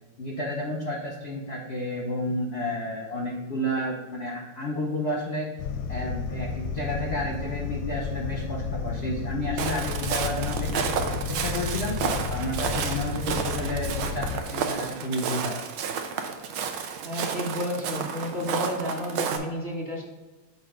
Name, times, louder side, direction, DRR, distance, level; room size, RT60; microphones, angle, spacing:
voice 1, 0.2-5.5 5.9-10.9 11.3-15.6, left 1 dB, 45° left, -1 dB, 0.8 m, -31 dB
sound 1, 5.6-14.4, left 5 dB, 90° left, 1.4 m, -32 dB
Walk footsteps, 9.6-19.4, right 7 dB, 85° right, 1.5 m, -31 dB
voice 2, 17.0-20.0, left 1 dB, 25° right, -3 dB, 1.3 m, -31 dB
6.8 x 4.1 x 4.9 m, 1.2 s
omnidirectional pair, 2.1 m